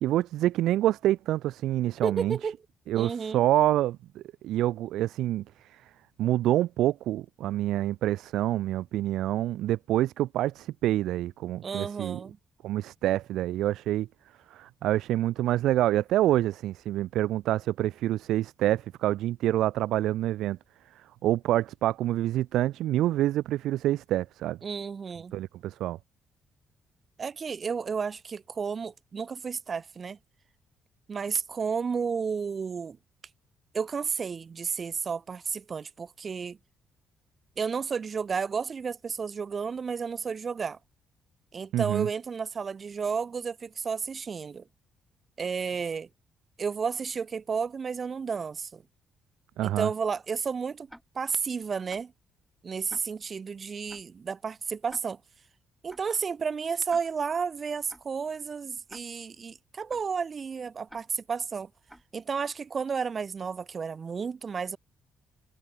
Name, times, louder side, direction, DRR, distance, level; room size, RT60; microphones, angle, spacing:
voice 1, 0.0-2.4 2.9-5.4 5.7-5.8 6.2-12.2 12.6-14.1 14.5-20.6 21.2-24.6 25.3-26.0 41.7-42.1 49.6-49.9, right 14 dB, 85° right, 0.4 m, -27 dB
voice 2, 2.0-2.6 2.9-3.4 11.6-12.4 24.6-25.4 27.2-30.2 31.1-33.0 33.7-36.6 37.6-40.8 41.5-44.6 45.4-46.1 46.6-48.8 49.6-50.9 51.1-52.1 52.6-55.2 55.8-61.7 62.1-64.8, right 5 dB, 40° right, 2.3 m, -32 dB
Tick-tock, 50.9-51.0 51.9-52.0 52.9-53.0 53.9-54.0 54.9-55.0 55.9-56.0 56.9-57.0 57.9-58.0 58.9-59.0 59.9-60.0 60.9-61.0 61.9-62.0, equal, 5° right, 3.3 m, -49 dB
cardioid pair, 90°, 0 cm